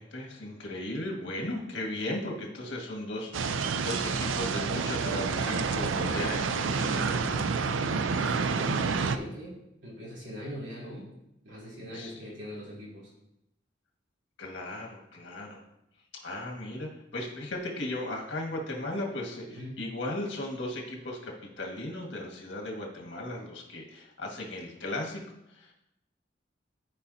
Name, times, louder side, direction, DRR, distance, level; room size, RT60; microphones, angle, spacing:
voice 1, 0.0-7.5 11.9-12.1 14.4-15.6 16.1-25.2 25.5-25.7, left 1 dB, 65° left, -1 dB, 1.8 m, -36 dB
sound 1, 3.3-9.2, right 5 dB, 90° right, 0.5 m, -29 dB
voice 2, 8.1-11.1 11.4-13.1 19.5-19.8, equal, 70° right, -5 dB, 3.0 m, -41 dB
13.0 x 5.1 x 2.8 m, 0.85 s
head